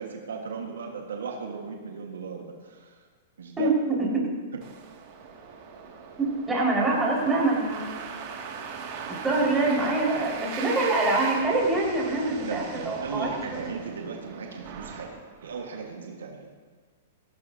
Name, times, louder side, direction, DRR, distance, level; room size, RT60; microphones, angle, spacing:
voice 1, 0.0-3.0 3.4-3.7 4.5-4.6 12.2-16.5, right 5 dB, 80° right, 1 dB, 1.6 m, -37 dB
sound 1, 4.6-15.8, right 5 dB, 50° right, 2.2 m, -39 dB
voice 2, 6.5-8.0 9.1-13.3 13.6-13.7, right 2 dB, 15° right, -4 dB, 4.9 m, -25 dB
17.0 x 15.5 x 2.8 m, 1.5 s
hypercardioid pair, 120°, 0 cm